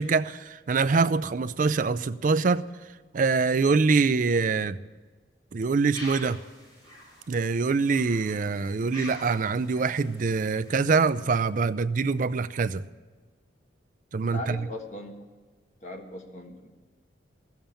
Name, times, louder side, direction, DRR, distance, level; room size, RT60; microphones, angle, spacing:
voice 1, 0.0-2.6 3.1-4.8 5.5-6.4 7.3-12.8 14.1-14.6, right 4 dB, 45° right, 14 dB, 0.4 m, -24 dB
sound 1, 5.9-11.0, equal, 20° left, 4.9 m, -46 dB
voice 2, 14.2-15.1 15.8-16.7, left 2 dB, 40° left, 3 dB, 1.5 m, -38 dB
14.5 x 7.2 x 8.8 m, 1.3 s
head